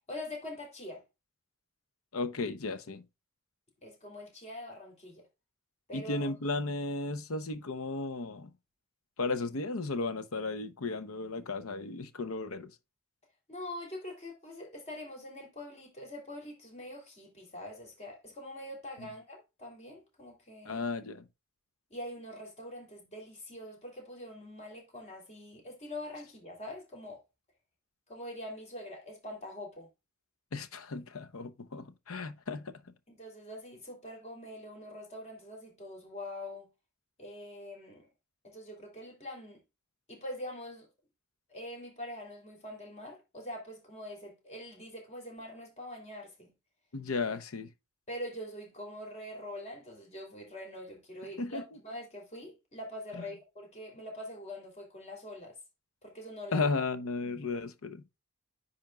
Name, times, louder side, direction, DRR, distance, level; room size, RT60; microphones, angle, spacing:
voice 1, 0.1-1.0 3.8-5.2 5.9-6.3 13.5-20.9 21.9-27.2 28.1-29.9 33.1-36.7 37.2-38.1 38.4-39.6 40.1-40.9 41.5-46.5 48.1-55.6 56.0-56.7, left 1 dB, 35° left, 3.0 m, -44 dB
voice 2, 2.1-3.1 5.9-8.5 9.2-12.7 19.0-19.1 20.6-21.2 30.5-32.9 46.9-47.7 51.4-51.6 53.2-53.3 56.5-58.0, left 3 dB, 85° left, 0.8 m, -35 dB
10.0 x 4.3 x 2.3 m
head